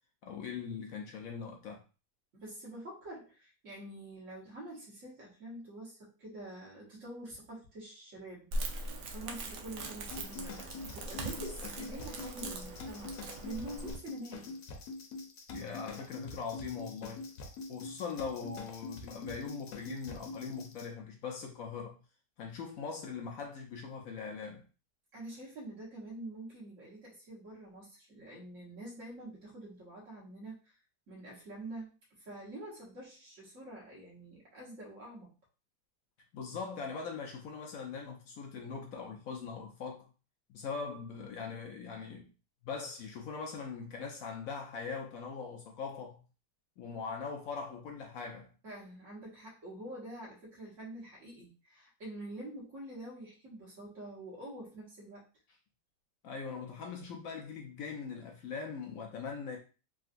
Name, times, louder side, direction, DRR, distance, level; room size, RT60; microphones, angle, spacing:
voice 1, 0.2-1.8 15.5-17.2 17.7-22.0 22.4-24.6 36.3-40.1 40.5-42.3 42.6-46.2 46.8-48.5 56.2-59.6, left 5 dB, 70° left, 0.8 m, -41 dB
voice 2, 2.3-14.5 25.1-30.8 31.1-35.3 48.6-55.3, right 1 dB, 50° right, 1.4 m, -46 dB
Crackle, 8.5-14.0, right 2 dB, 75° right, 1.1 m, -40 dB
sound 1, 10.1-20.9, left 3 dB, 90° left, 1.3 m, -45 dB
3.6 x 2.4 x 2.5 m
omnidirectional pair, 1.9 m